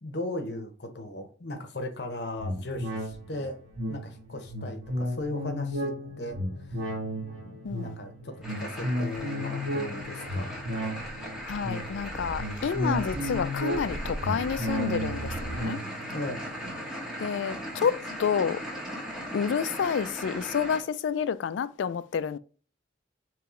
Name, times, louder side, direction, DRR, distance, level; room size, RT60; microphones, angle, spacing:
voice 1, 0.0-3.6 3.9-6.9 7.4-10.6 16.1-16.5, left 1 dB, 60° left, 0.9 m, -37 dB
sound 1, 2.4-18.1 18.5-18.6, equal, 90° right, 1.6 m, -34 dB
voice 2, 7.6-8.0 11.4-15.8 17.2-18.6 19.3-22.4, left 7 dB, 75° left, 0.3 m, -29 dB
sound 2, 8.4-20.8, equal, 5° right, 1.2 m, -38 dB
sound 3, 10.3-15.6, right 2 dB, 30° right, 0.3 m, -41 dB
4.6 x 3.0 x 3.7 m
head